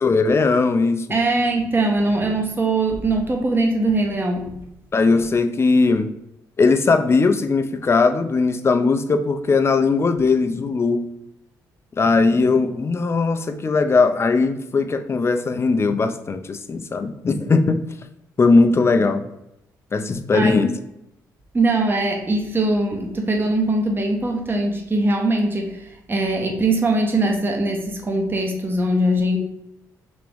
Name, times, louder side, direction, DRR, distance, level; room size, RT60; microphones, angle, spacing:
voice 1, 0.0-1.1 4.9-6.1 6.6-11.0 12.0-17.8 18.4-19.2 19.9-20.7, left 4 dB, 30° left, 8 dB, 0.4 m, -19 dB
voice 2, 1.1-4.6 20.3-20.6 21.5-29.4, right 2 dB, 25° right, 1 dB, 0.8 m, -21 dB
3.5 x 2.9 x 3.4 m, 0.84 s
supercardioid pair, 55°, 8 cm